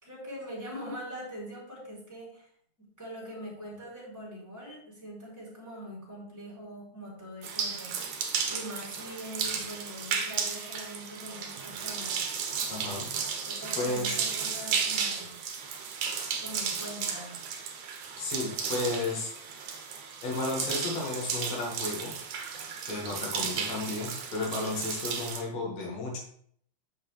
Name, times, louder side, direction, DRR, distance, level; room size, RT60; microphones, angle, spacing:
voice 1, 0.0-2.5 2.8-8.0 8.5-12.2 13.5-15.4 16.4-17.4, equal, 5° right, -6 dB, 3.8 m, -43 dB
sound 1, 7.4-25.4, right 6 dB, 85° right, 2.6 m, -34 dB
voice 2, 12.7-13.5 13.7-14.2 18.2-19.4 20.2-22.1 22.9-26.2, left 2 dB, 65° left, -1 dB, 3.3 m, -33 dB
9.3 x 6.8 x 3.4 m, 0.64 s
omnidirectional pair, 3.4 m